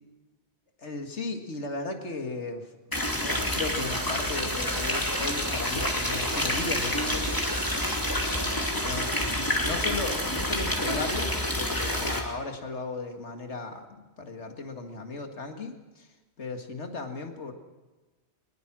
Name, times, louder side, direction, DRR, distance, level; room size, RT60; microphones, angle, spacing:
voice 1, 0.8-2.7 3.0-7.3 8.8-11.3 11.6-13.9 14.2-16.1 16.4-17.5, left 3 dB, 80° left, 5 dB, 2.3 m, -36 dB
sound 1, 2.9-12.2, left 1 dB, 20° left, 2.7 m, -28 dB
22.5 x 20.5 x 6.2 m, 1.2 s
omnidirectional pair, 1.2 m